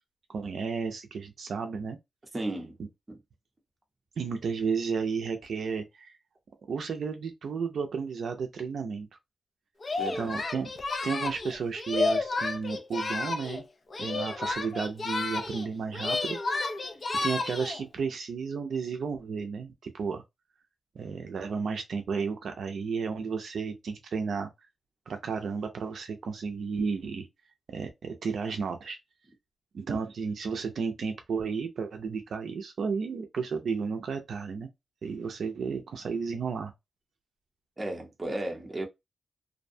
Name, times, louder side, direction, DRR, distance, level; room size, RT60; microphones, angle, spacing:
voice 1, 0.3-2.0 4.2-6.2 6.7-9.1 10.2-10.7 11.0-13.6 14.0-16.4 17.1-20.2 21.0-24.5 25.1-27.3 27.7-29.0 29.7-34.7 35.0-36.7, right 5 dB, 65° right, 0.4 m, -33 dB
voice 2, 2.3-2.8 3.1-3.2 10.0-10.3 37.8-38.9, right 1 dB, 20° right, 0.7 m, -34 dB
Singing, 9.8-13.6 13.9-15.7 15.9-17.8, left 3 dB, 35° left, 0.4 m, -31 dB
2.5 x 2.1 x 2.6 m
wide cardioid pair, 165°, 0 cm